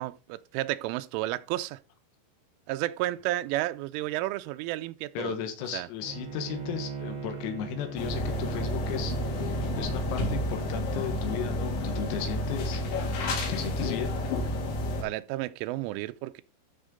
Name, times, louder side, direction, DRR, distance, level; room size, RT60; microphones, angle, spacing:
voice 1, 0.0-1.8 2.7-5.3 5.7-5.9 15.0-16.4, right 16 dB, 85° right, 2.9 m, -32 dB
voice 2, 5.2-14.1 14.4-14.6, left 8 dB, 85° left, 4.1 m, -35 dB
Bowed string instrument, 6.0-10.6, right 5 dB, 65° right, 5.3 m, -39 dB
sound 1, 8.0-15.0, left 1 dB, 70° left, 4.1 m, -30 dB
12.5 x 5.1 x 3.8 m
omnidirectional pair, 6.0 m